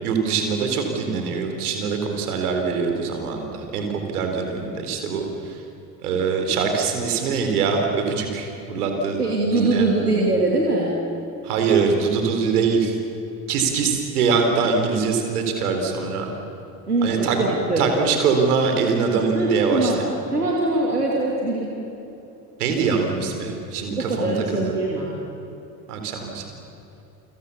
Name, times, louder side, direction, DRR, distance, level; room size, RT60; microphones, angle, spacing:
voice 1, 0.0-5.6 6.0-9.2 9.5-9.9 11.4-13.0 13.5-16.3 17.0-20.1 22.6-24.7 25.9-26.4, right 5 dB, 75° right, 4 dB, 4.1 m, -23 dB
voice 2, 9.2-11.0 16.9-17.9 19.3-20.0 20.3-21.7 24.0-25.2, right 2 dB, 90° right, -3 dB, 2.9 m, -22 dB
29.5 x 25.5 x 7.1 m, 2.9 s
figure-of-eight pair, 55°, 45 cm